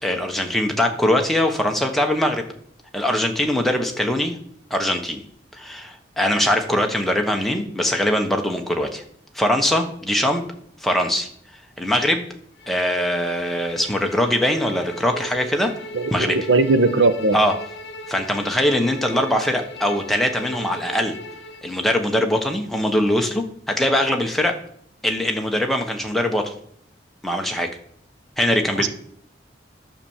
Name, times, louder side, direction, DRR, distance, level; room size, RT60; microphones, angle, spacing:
voice 1, 0.0-2.4 2.9-4.4 4.7-5.2 5.5-9.0 9.3-10.5 10.8-11.3 11.8-12.2 12.7-15.7 16.1-16.4 17.3-17.5 18.1-21.2 21.6-24.6 25.0-26.5 27.2-27.7 28.4-28.9, left 1 dB, ahead, 3 dB, 1.1 m, -22 dB
Bowed string instrument, 12.6-21.7, equal, 65° left, 1.0 m, -37 dB
voice 2, 15.9-17.4 28.8-28.9, right 3 dB, 85° right, 10 dB, 1.0 m, -19 dB
10.5 x 5.9 x 7.3 m, 0.65 s
head